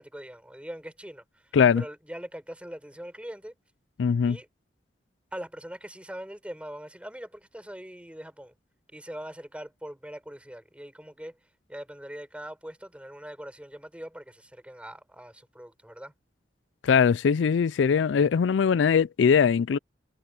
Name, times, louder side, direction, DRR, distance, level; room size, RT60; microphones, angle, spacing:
voice 1, 0.0-3.6 4.2-4.5 5.3-8.5 8.9-11.4 11.7-16.1, equal, 5° right, 4.7 m, -42 dB
voice 2, 4.0-4.4 16.8-19.8, left 6 dB, 85° left, 0.4 m, -21 dB
head